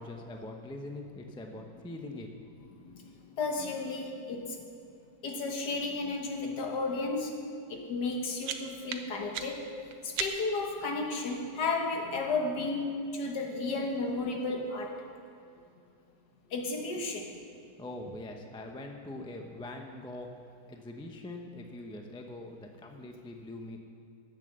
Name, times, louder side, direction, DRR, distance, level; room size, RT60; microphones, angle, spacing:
voice 1, 0.0-2.3 17.8-20.3 20.7-23.8, left 2 dB, 5° left, 3 dB, 0.3 m, -43 dB
voice 2, 2.7-4.7 5.2-7.4 7.7-15.1 16.5-17.4, left 3 dB, 70° left, 1 dB, 1.9 m, -33 dB
sound 1, 8.0-10.7, right 8 dB, 85° right, 1.4 m, -39 dB
11.0 x 8.2 x 6.7 m, 2.6 s
omnidirectional pair, 1.8 m